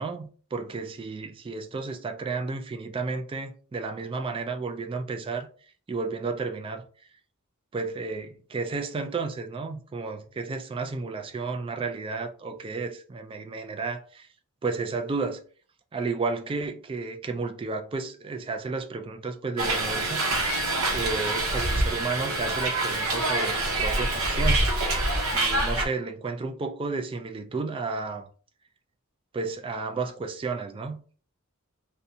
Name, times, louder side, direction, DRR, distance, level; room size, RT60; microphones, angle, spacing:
voice 1, 0.0-5.5 5.9-6.8 7.7-14.3 14.6-15.4 15.9-20.2 20.9-24.7 25.3-28.2 29.3-31.1, right 4 dB, 25° right, 0.3 m, -32 dB
Hiss, 19.6-25.9, right 2 dB, 80° right, 0.7 m, -26 dB
2.5 x 2.2 x 2.7 m
head